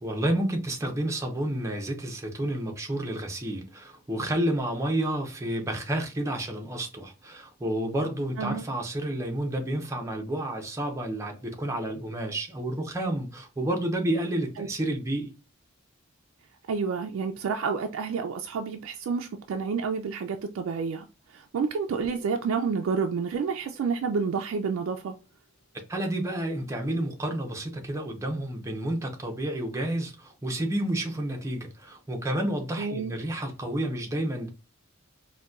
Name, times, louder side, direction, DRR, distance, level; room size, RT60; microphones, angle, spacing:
voice 1, 0.0-15.3 25.9-34.5, right 1 dB, 15° right, 0.6 m, -30 dB
voice 2, 16.7-25.1 32.8-33.1, right 5 dB, 85° right, 0.3 m, -29 dB
sound 1, 22.0-26.1, equal, 30° left, 0.5 m, -55 dB
3.9 x 2.2 x 2.3 m
head